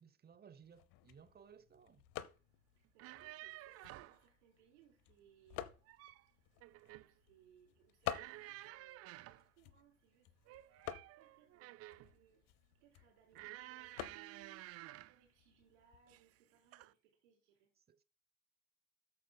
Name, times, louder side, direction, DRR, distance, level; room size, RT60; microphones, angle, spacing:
voice 1, 0.0-2.0 17.9-18.0, right 7 dB, 25° right, 0.8 m, -61 dB
sound 1, 0.6-16.2, left 13 dB, 60° left, 0.8 m, -51 dB
sound 2, 2.8-4.2 5.6-6.3 6.6-7.1 8.0-9.5 10.4-12.1 13.3-15.2 16.1-16.4 16.7-16.9, right 17 dB, 45° right, 0.4 m, -52 dB
voice 2, 2.9-5.7 6.9-12.5 12.8-17.7, right 9 dB, 75° right, 4.0 m, -68 dB
13.5 x 7.5 x 2.2 m
figure-of-eight pair, 55°, 36 cm